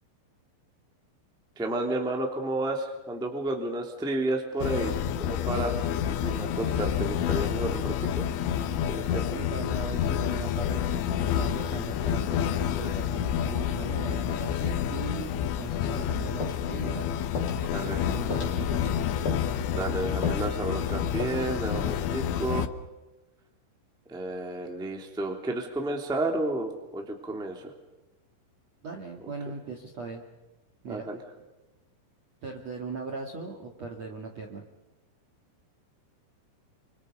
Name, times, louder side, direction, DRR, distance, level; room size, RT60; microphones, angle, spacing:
voice 1, 1.5-4.9 5.2-8.2 8.9-9.4 17.7-18.1 19.7-22.7 24.1-27.7 30.9-31.2, right 2 dB, ahead, 2 dB, 1.4 m, -31 dB
sound 1, 4.6-22.7, left 9 dB, 75° left, 2.8 m, -29 dB
voice 2, 9.3-17.2 18.0-19.1 28.8-30.2 30.8-31.1 32.4-34.6, right 4 dB, 55° right, 2 dB, 1.9 m, -39 dB
sound 2, 16.4-17.1 17.3-17.6 17.8-18.0 18.3-18.9 19.3-19.5 19.7-20.0 20.2-20.5 20.7-20.9 21.2-21.3, left 1 dB, 25° left, 5.8 m, -36 dB
30.0 x 26.0 x 5.3 m, 1.0 s
omnidirectional pair, 6.0 m